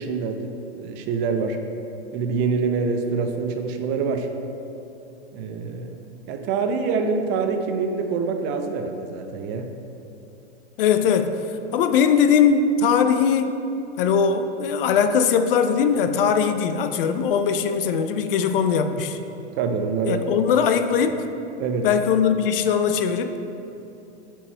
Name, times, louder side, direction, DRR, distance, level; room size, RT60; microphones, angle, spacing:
voice 1, 0.0-1.6 2.1-4.3 5.3-6.0 6.3-9.7 19.6-20.3 21.6-21.9, right 5 dB, 30° right, 5 dB, 0.6 m, -25 dB
voice 2, 10.8-11.3 11.7-13.5 14.0-19.2 20.1-21.3 21.8-23.5, left 6 dB, 55° left, 8 dB, 0.6 m, -20 dB
8.2 x 4.7 x 4.5 m, 2.8 s
hypercardioid pair, 115°, 34 cm